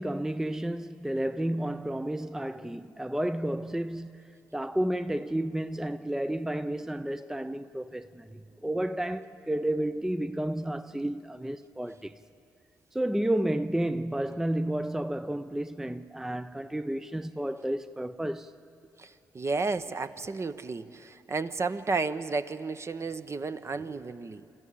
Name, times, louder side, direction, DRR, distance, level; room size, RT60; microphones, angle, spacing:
voice 1, 0.0-12.2 12.9-18.5, right 1 dB, 5° right, 0.5 m, -31 dB
voice 2, 19.0-24.5, right 4 dB, 35° right, 0.8 m, -32 dB
26.0 x 14.0 x 8.5 m
hypercardioid pair, 45°, 8 cm